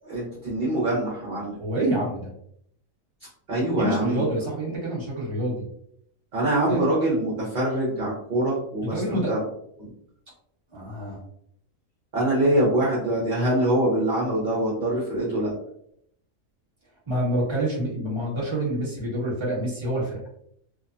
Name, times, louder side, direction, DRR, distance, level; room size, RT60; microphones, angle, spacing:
voice 1, 0.0-1.5 3.5-4.2 6.3-9.4 12.1-15.5, right 1 dB, 45° right, -6 dB, 0.8 m, -24 dB
voice 2, 1.6-2.3 3.8-5.6 6.7-6.8 8.8-9.3 10.7-11.2 17.1-20.2, right 1 dB, 25° right, -5 dB, 1.0 m, -27 dB
2.9 x 2.1 x 2.5 m, 0.69 s
omnidirectional pair, 1.4 m